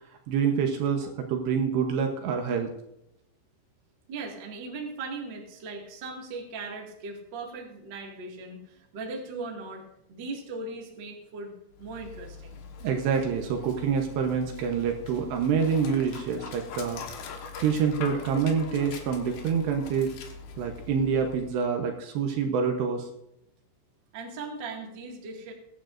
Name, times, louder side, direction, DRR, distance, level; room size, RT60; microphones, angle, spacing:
voice 1, 0.3-2.7 12.8-17.0 17.5-20.1 20.6-23.1, right 6 dB, 75° right, 3 dB, 2.8 m, -26 dB
voice 2, 4.1-11.5 11.8-12.7 24.1-25.5, right 3 dB, 50° right, -1 dB, 1.3 m, -38 dB
Dog, 11.7-21.7, left 5 dB, 65° left, 3.0 m, -42 dB
22.0 x 11.5 x 2.6 m, 0.81 s
omnidirectional pair, 5.7 m